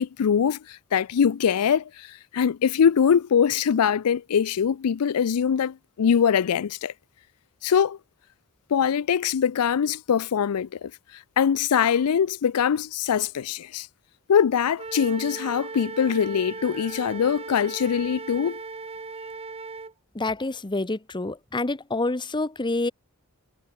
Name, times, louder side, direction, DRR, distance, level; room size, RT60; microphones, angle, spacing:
voice 1, 0.0-6.9 7.6-8.0 8.7-10.9 11.4-13.9 14.3-18.6, left 7 dB, 85° left, 0.4 m, -23 dB
Wind instrument woodwind instrument, 14.8-19.9, right 3 dB, 25° right, 1.0 m, -37 dB
voice 2, 20.1-22.9, left 2 dB, 20° left, 0.9 m, -27 dB
head